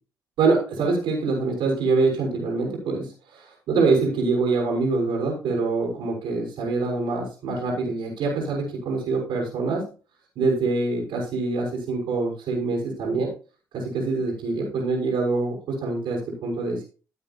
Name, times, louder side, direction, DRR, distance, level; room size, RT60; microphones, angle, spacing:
voice 1, 0.4-3.4 3.7-9.8 10.4-13.3 13.7-16.8, right 3 dB, 70° right, -2 dB, 5.8 m, -25 dB
16.0 x 8.0 x 2.7 m, 0.35 s
hypercardioid pair, 45°, 9 cm